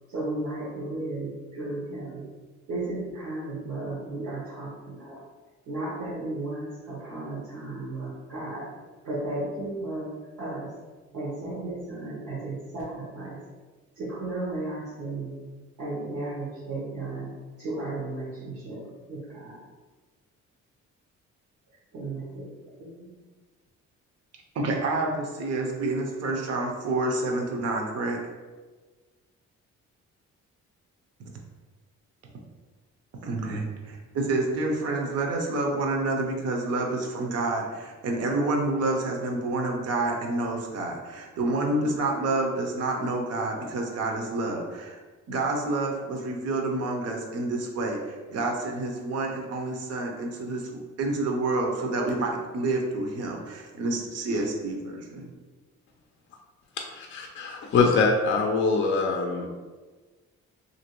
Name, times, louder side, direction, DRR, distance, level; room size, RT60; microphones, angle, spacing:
voice 1, 0.1-2.2 2.7-5.2 5.7-8.7 9.0-10.1 10.4-10.7 11.1-13.4 14.0-15.4 15.8-19.6 21.9-22.5 22.8-23.2, right 2 dB, 85° right, -7 dB, 1.0 m, -34 dB
voice 2, 24.5-28.2 33.2-45.0 45.3-55.3, right 2 dB, 55° right, 1 dB, 0.7 m, -28 dB
voice 3, 56.8-59.5, left 4 dB, 40° left, 2 dB, 0.4 m, -24 dB
2.9 x 2.6 x 2.9 m, 1.3 s
cardioid pair, 90°, 30 cm